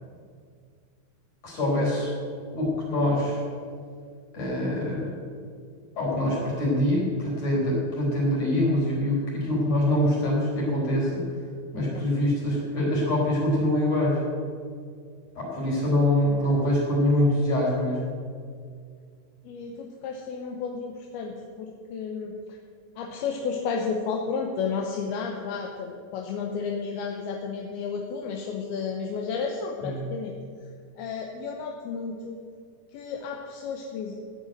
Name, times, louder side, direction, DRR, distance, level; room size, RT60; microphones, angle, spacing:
voice 1, 1.4-2.1 2.5-3.4 4.3-5.1 6.0-11.2 11.7-14.2 15.4-18.1 29.8-30.0, left 1 dB, 40° left, -5 dB, 5.2 m, -24 dB
voice 2, 11.7-12.1 19.4-22.6 23.0-30.3 31.0-32.4 32.9-34.2, left 5 dB, 80° left, 1 dB, 2.7 m, -32 dB
14.5 x 6.5 x 9.0 m, 2.2 s
omnidirectional pair, 4.7 m